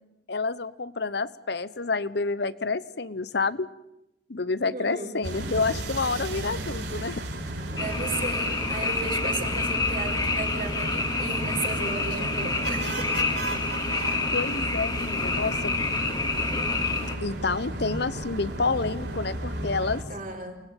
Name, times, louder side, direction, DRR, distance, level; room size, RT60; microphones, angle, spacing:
voice 1, 0.3-3.7 4.3-7.2 14.3-15.8 17.2-20.0, left 4 dB, 60° left, 17 dB, 1.0 m, -29 dB
voice 2, 4.7-5.1 7.7-13.1 20.1-20.6, right 3 dB, 45° right, 2 dB, 4.0 m, -35 dB
sound 1, 5.2-20.0, right 1 dB, 60° right, 5.4 m, -34 dB
Frog, 7.8-17.1, left 3 dB, 20° left, 3.1 m, -28 dB
29.0 x 20.5 x 9.2 m, 0.87 s
head